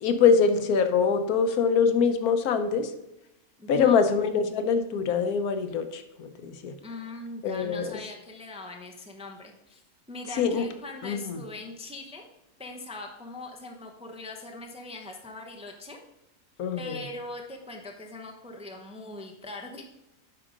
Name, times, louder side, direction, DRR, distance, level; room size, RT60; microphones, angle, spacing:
voice 1, 0.0-2.9 3.7-6.8 7.4-7.9 10.3-10.7 11.0-11.4 16.6-17.0, left 6 dB, 85° left, 9 dB, 1.2 m, -24 dB
voice 2, 3.6-4.0 6.8-9.8 10.1-12.2 12.6-16.0 16.8-19.8, left 2 dB, 5° right, 2 dB, 0.5 m, -41 dB
8.9 x 3.8 x 5.1 m, 0.90 s
omnidirectional pair, 1.5 m